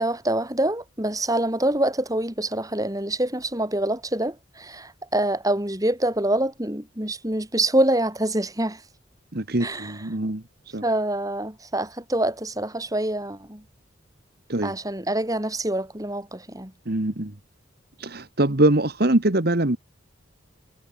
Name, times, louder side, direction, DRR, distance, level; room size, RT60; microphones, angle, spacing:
voice 1, 0.0-8.8 9.6-9.9 10.8-13.6 14.6-16.7, right 1 dB, 20° right, 4.8 m, -25 dB
voice 2, 9.3-10.8 14.5-14.7 16.8-17.3 18.0-19.8, right 1 dB, 55° right, 1.7 m, -23 dB
head